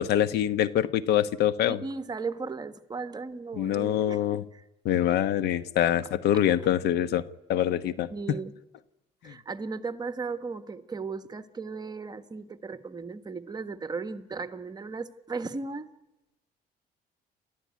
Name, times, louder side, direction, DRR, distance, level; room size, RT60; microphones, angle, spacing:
voice 1, 0.0-1.8 3.6-4.4 4.8-7.2 7.5-8.4 9.2-9.3, left 11 dB, 75° left, 13 dB, 1.2 m, -25 dB
voice 2, 1.6-4.6 6.3-6.4 8.1-8.5 9.2-15.9, right 4 dB, 25° right, 10 dB, 1.4 m, -36 dB
29.0 x 13.5 x 9.5 m, 0.98 s
cardioid pair, 110°, 17 cm